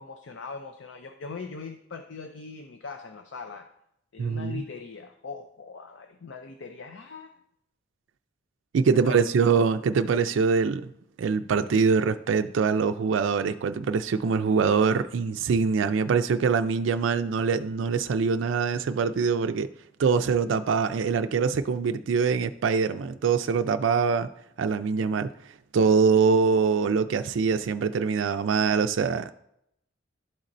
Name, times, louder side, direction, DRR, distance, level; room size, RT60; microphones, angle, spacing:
voice 1, 0.0-3.7 4.1-7.3 9.0-9.5, left 4 dB, 70° left, 0.5 m, -41 dB
voice 2, 4.2-4.6 8.7-10.9 11.2-19.7 20.0-24.3 24.6-25.3 25.7-29.3, right 5 dB, 75° right, 0.4 m, -24 dB
12.0 x 4.2 x 2.6 m
head